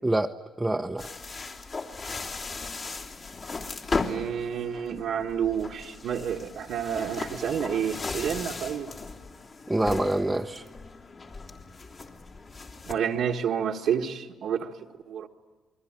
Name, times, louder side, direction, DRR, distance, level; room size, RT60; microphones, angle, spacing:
voice 1, 0.0-1.1 9.7-10.6, right 1 dB, 10° right, 3 dB, 0.9 m, -26 dB
sound 1, 1.0-13.0, left 3 dB, 45° left, 3.2 m, -37 dB
voice 2, 4.0-8.9 12.9-14.7 15.1-15.3, right 8 dB, 75° right, -1 dB, 1.5 m, -29 dB
29.0 x 22.0 x 8.9 m, 1.4 s
cardioid pair, 90°, 0 cm